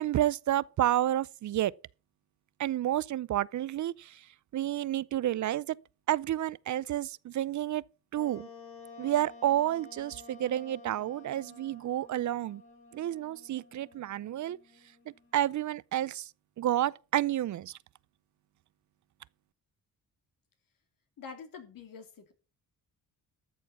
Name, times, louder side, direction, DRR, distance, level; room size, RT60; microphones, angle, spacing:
voice 1, 0.0-1.7 2.6-4.2 4.5-5.8 6.1-7.8 8.1-8.5 9.0-12.6 12.9-14.6 15.3-16.3 16.6-17.8, right 12 dB, 55° right, 0.5 m, -30 dB
Wind instrument woodwind instrument, 8.1-15.6, left 3 dB, 35° left, 4.7 m, -52 dB
voice 2, 21.2-22.3, left 5 dB, 70° left, 3.3 m, -46 dB
13.5 x 7.1 x 5.9 m
cardioid pair, 105°, 35 cm